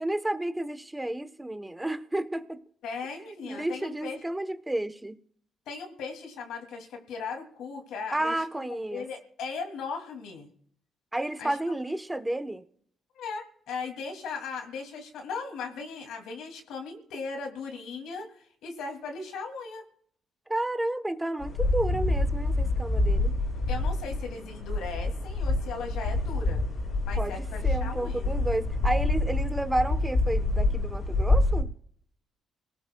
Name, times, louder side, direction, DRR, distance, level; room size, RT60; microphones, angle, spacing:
voice 1, 0.0-2.6 3.4-5.2 8.1-9.0 11.1-12.6 20.5-23.3 27.2-27.4 27.6-31.7, right 1 dB, 10° right, 9 dB, 1.0 m, -31 dB
voice 2, 2.8-4.2 5.7-10.5 11.4-11.6 13.1-19.8 23.7-26.6 27.0-28.3, left 4 dB, 85° left, 3 dB, 2.6 m, -38 dB
sound 1, 21.4-31.6, left 2 dB, 60° left, 6.0 m, -27 dB
27.0 x 18.0 x 2.3 m, 0.65 s
cardioid pair, 90°, 0 cm